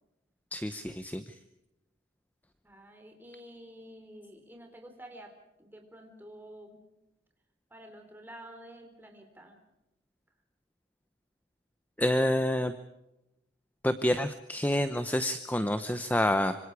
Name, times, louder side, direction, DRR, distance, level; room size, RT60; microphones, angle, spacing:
voice 1, 0.5-1.2 12.0-12.7 13.8-16.6, left 1 dB, 10° left, 10 dB, 0.8 m, -28 dB
voice 2, 2.6-6.8 7.7-9.6, right 1 dB, 10° right, 4 dB, 3.8 m, -50 dB
26.0 x 25.5 x 4.8 m, 0.92 s
head